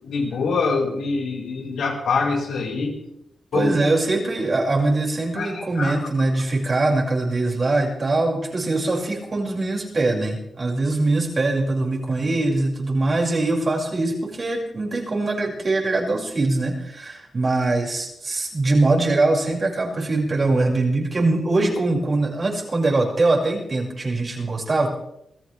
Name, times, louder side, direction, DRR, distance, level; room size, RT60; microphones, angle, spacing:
voice 1, 0.0-3.0 3.5-3.7 5.4-5.9, left 4 dB, 85° left, 0 dB, 5.4 m, -24 dB
voice 2, 3.5-24.9, right 2 dB, 40° right, -1 dB, 6.1 m, -22 dB
27.0 x 14.5 x 3.5 m, 0.80 s
cardioid pair, 85°, 0 cm